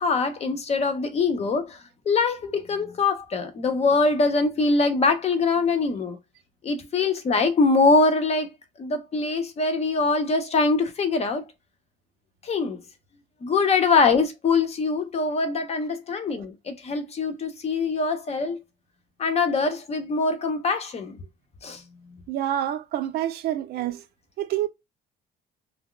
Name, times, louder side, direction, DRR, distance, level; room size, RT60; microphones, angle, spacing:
voice 1, 0.0-6.2 6.6-8.5 8.8-11.5 12.4-12.8 13.4-18.6 19.2-21.2 21.6-21.8, left 4 dB, 40° left, 0.7 m, -23 dB
voice 2, 22.3-24.0 24.4-24.7, right 12 dB, 70° right, 0.5 m, -27 dB
2.3 x 2.0 x 3.7 m
cardioid pair, 110°, 17 cm